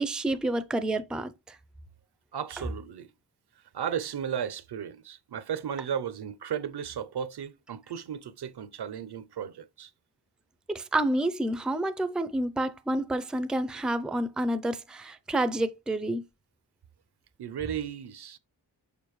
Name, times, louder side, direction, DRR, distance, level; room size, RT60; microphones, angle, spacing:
voice 1, 0.0-1.6 10.7-16.2, right 1 dB, ahead, 0.4 m, -29 dB
voice 2, 2.3-3.1 3.7-9.9 17.4-18.4, right 8 dB, 70° right, 0.7 m, -35 dB
6.8 x 5.0 x 3.1 m
wide cardioid pair, 115°, 41 cm